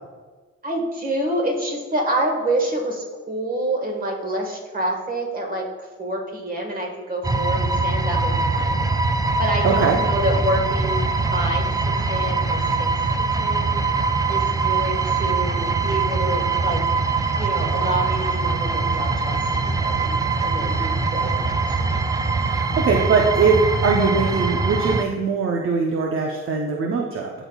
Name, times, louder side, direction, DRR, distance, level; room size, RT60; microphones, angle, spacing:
voice 1, 0.6-9.1 9.4-11.6 12.1-12.9 13.2-13.7 14.3-16.8 17.4-22.0, right 1 dB, 30° right, 1 dB, 1.5 m, -27 dB
sound 1, 7.2-25.0, right 4 dB, 15° right, 0.3 m, -22 dB
voice 2, 9.6-10.0 22.5-27.3, right 4 dB, 45° right, 1 dB, 0.8 m, -21 dB
12.0 x 4.1 x 2.3 m, 1.4 s
cardioid pair, 90°, 30 cm